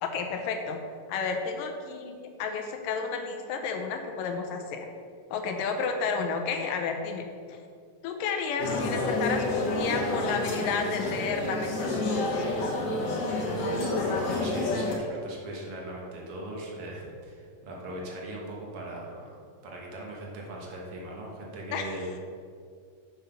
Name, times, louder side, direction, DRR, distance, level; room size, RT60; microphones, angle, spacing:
voice 1, 0.0-0.8 1.1-4.9 5.3-7.6 8.0-12.5 21.7-22.0, left 5 dB, 90° left, 4 dB, 2.5 m, -31 dB
sound 1, 8.6-14.9, left 2 dB, 55° left, 2.0 m, -29 dB
voice 2, 13.3-13.6 14.0-19.4 19.6-22.1, right 1 dB, 55° right, -2 dB, 1.8 m, -39 dB
7.2 x 5.7 x 5.6 m, 2.2 s
omnidirectional pair, 3.8 m